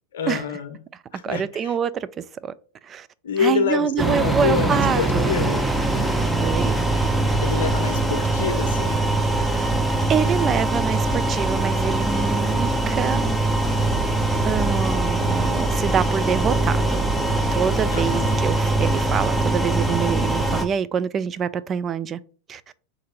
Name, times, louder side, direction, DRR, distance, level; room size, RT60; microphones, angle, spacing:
voice 1, 0.1-0.8 1.1-1.7 3.2-5.7 7.3-9.0 17.9-18.4, left 6 dB, 70° left, 0.6 m, -27 dB
voice 2, 1.2-2.1 2.4-2.5 2.9-3.1 3.4-5.3 6.4-6.7 9.4-9.8 10.1-13.3 14.4-17.1 17.5-22.2 22.5-22.6, right 7 dB, 30° right, 0.3 m, -26 dB
sound 1, 4.0-20.6, right 2 dB, 5° right, 0.7 m, -22 dB
3.8 x 2.6 x 4.7 m
hypercardioid pair, 90°, 0 cm